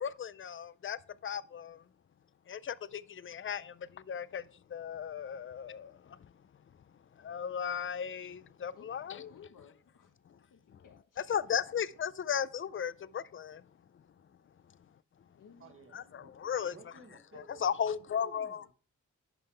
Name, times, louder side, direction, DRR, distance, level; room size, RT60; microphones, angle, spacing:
voice 1, 0.0-1.8 2.5-6.3 7.2-9.3 10.3-10.4 11.3-13.6 15.9-16.7 17.3-18.7, left 8 dB, 40° left, 0.4 m, -36 dB
voice 2, 8.7-11.4 15.3-16.2, left 6 dB, 90° left, 1.4 m, -59 dB
voice 3, 15.6-16.3 16.7-17.6 18.1-18.7, right 4 dB, 45° right, 1.3 m, -55 dB
11.0 x 5.6 x 3.4 m
wide cardioid pair, 110°, 30 cm